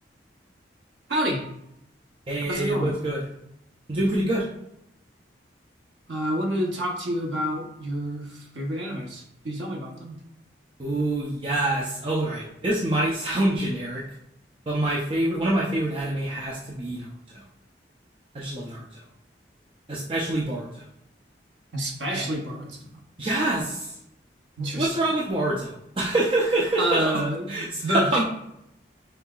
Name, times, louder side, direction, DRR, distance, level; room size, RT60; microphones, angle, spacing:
voice 1, 1.1-1.4 2.4-3.0 6.1-10.2 21.7-22.9 24.6-24.9 26.8-28.2, equal, 75° right, 0 dB, 0.9 m, -28 dB
voice 2, 2.3-3.3 3.9-4.5 10.8-14.0 14.7-17.4 18.3-19.0 19.9-20.9 22.1-22.3 23.2-23.9 24.8-27.2 27.5-28.2, right 1 dB, 30° right, -5 dB, 0.5 m, -26 dB
5.5 x 3.4 x 2.3 m, 0.79 s
head